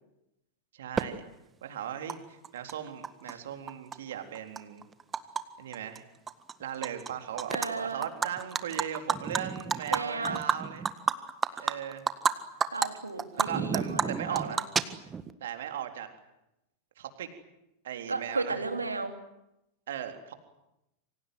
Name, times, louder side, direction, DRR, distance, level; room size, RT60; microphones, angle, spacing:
voice 1, 0.7-1.3 1.6-4.8 5.6-6.0 6.6-10.9 11.6-12.0 13.3-14.7 15.4-16.1 17.0-17.3 17.8-18.6 19.9-20.3, right 10 dB, 60° right, 6 dB, 3.8 m, -38 dB
Animal, 1.0-1.1 2.1-2.2 2.4-3.3 3.7-5.4 5.7-6.0 6.3-7.1 7.4-7.7 8.0-12.3 12.6-12.9 13.2-15.3, right 6 dB, 20° right, 1.7 m, -30 dB
voice 2, 7.5-8.0 9.9-10.4 11.6-11.7 12.7-14.6 18.1-19.1, right 3 dB, 80° right, 6 dB, 3.4 m, -34 dB
27.5 x 25.5 x 7.9 m, 0.88 s
figure-of-eight pair, 90°, 0 cm